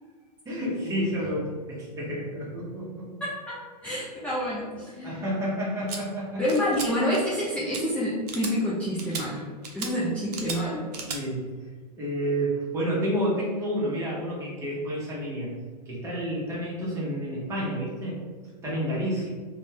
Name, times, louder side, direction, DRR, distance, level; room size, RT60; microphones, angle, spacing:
voice 1, 0.4-3.1 5.0-6.4 11.1-11.5 12.0-15.5 15.9-18.2 18.6-19.3, equal, 15° right, -6 dB, 1.0 m, -30 dB
voice 2, 3.2-5.2 6.4-9.5 9.7-10.9, equal, 5° left, -8 dB, 0.4 m, -28 dB
sound 1, 5.9-6.0 6.5-6.9 7.1-7.4 7.7-7.8 8.3-8.5 9.0-9.2 9.6-9.9 10.3-10.6 10.9-11.2, right 5 dB, 70° right, 0.6 m, -35 dB
2.5 x 2.3 x 3.3 m, 1.5 s
hypercardioid pair, 120°, 21 cm